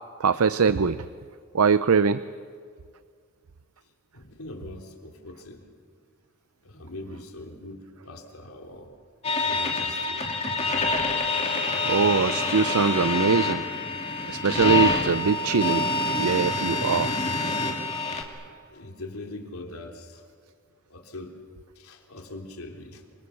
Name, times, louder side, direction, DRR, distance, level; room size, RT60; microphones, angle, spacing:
voice 1, 0.2-1.0 1.5-2.2 11.8-13.6 14.3-15.9 16.2-17.2, right 5 dB, 75° right, 14 dB, 0.6 m, -22 dB
voice 2, 4.1-5.6 6.6-8.9 9.4-10.2 18.7-20.2 20.9-21.3 21.8-23.0, left 2 dB, 75° left, 3 dB, 3.3 m, -41 dB
Synth Radio distorted morph, 9.2-18.2, left 2 dB, 30° left, 2.8 m, -26 dB
28.0 x 25.5 x 7.2 m, 2.1 s
head